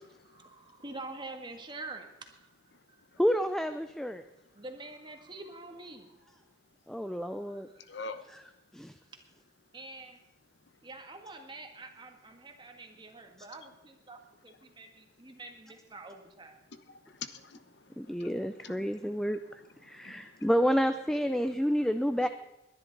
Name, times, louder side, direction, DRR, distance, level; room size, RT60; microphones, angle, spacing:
voice 1, 0.2-2.5 2.9-3.0 4.5-6.3 6.9-8.0 9.7-10.2 10.8-16.6 20.2-20.3, right 2 dB, 25° right, 4 dB, 1.6 m, -47 dB
voice 2, 3.2-4.2 6.9-7.7 8.7-8.9 18.0-19.4 19.8-22.3, equal, 5° left, 9 dB, 0.4 m, -29 dB
voice 3, 7.9-8.3 16.7-19.2 19.8-20.5 21.2-21.4 22.2-22.3, left 4 dB, 75° left, 10 dB, 1.0 m, -46 dB
21.0 x 11.0 x 4.0 m, 0.91 s
head